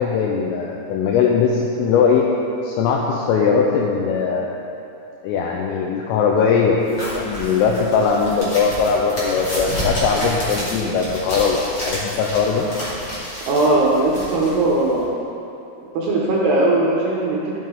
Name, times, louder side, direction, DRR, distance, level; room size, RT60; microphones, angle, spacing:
voice 1, 0.0-2.2 2.6-4.6 5.2-12.7, left 5 dB, 85° left, -1 dB, 3.2 m, -20 dB
sound 1, 6.9-15.0, equal, 35° left, 1.9 m, -30 dB
voice 2, 13.5-15.2 15.9-17.5, right 2 dB, 80° right, -5 dB, 2.4 m, -19 dB
12.5 x 7.7 x 3.8 m, 2.8 s
omnidirectional pair, 5.9 m